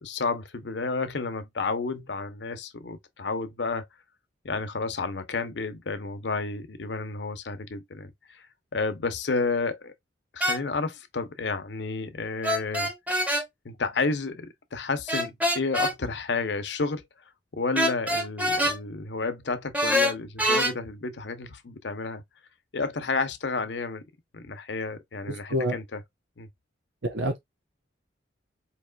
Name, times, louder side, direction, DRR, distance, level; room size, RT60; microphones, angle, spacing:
voice 1, 0.0-3.9 4.4-8.5 8.7-9.9 10.3-12.9 13.6-17.1 17.5-22.2 22.7-24.1 24.3-26.0 26.4-26.5, left 4 dB, 70° left, 0.7 m, -31 dB
sound 1, 10.4-10.6 12.4-13.4 15.1-15.9 17.7-18.8 19.7-20.7, equal, 10° right, 0.7 m, -24 dB
voice 2, 25.3-25.7 27.0-27.4, equal, 75° right, 0.9 m, -27 dB
4.8 x 2.9 x 2.3 m
head